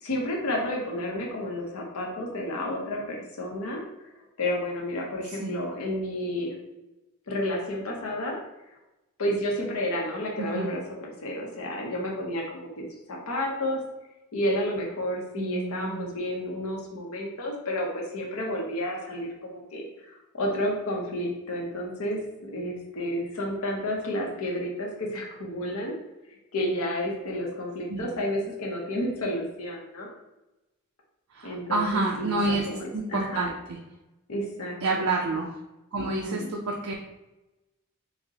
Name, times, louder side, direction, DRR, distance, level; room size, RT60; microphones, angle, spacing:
voice 1, 0.0-4.1 4.4-6.5 7.3-8.4 9.2-13.8 14.3-22.2 22.5-26.0 26.5-30.1 31.4-33.5 34.3-35.0 36.0-36.5, left 1 dB, 80° left, -1 dB, 0.7 m, -31 dB
voice 2, 5.3-5.6 10.4-10.7 15.4-16.1 27.9-28.1 31.3-32.7 32.9-33.8 34.8-35.6 35.9-37.0, right 3 dB, 75° right, -1 dB, 0.4 m, -29 dB
4.8 x 2.0 x 2.8 m, 0.98 s
head